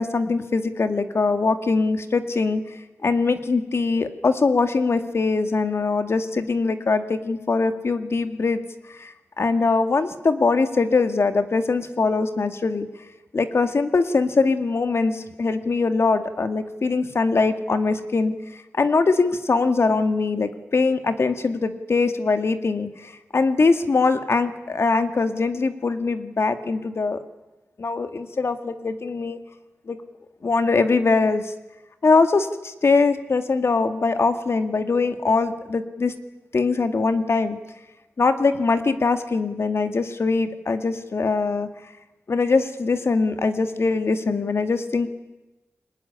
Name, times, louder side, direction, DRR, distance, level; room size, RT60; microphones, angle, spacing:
voice 1, 0.0-2.6 3.0-8.6 9.0-12.9 13.3-18.3 18.8-27.2 27.8-29.4 29.9-30.0 30.4-31.4 32.0-36.1 36.5-37.6 38.2-41.7 42.3-45.1, left 4 dB, 55° left, 9 dB, 2.1 m, -22 dB
23.5 x 19.5 x 9.9 m, 1.0 s
cardioid pair, 70°, 5 cm